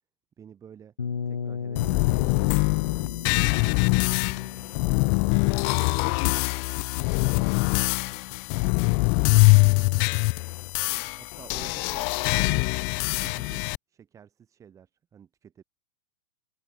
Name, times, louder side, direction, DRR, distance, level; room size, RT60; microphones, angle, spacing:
voice 1, 0.4-0.9 1.3-4.0 4.3-6.6 6.9-8.2 8.6-9.2 9.6-10.0 11.1-15.6, right 8 dB, 20° right, 5.9 m, -51 dB
sound 1, 1.0-6.8, left 6 dB, 80° left, 0.8 m, -37 dB
sound 2, 1.8-13.8, left 40 dB or more, 35° left, 0.4 m, -23 dB
open air
figure-of-eight pair, 100°, 14 cm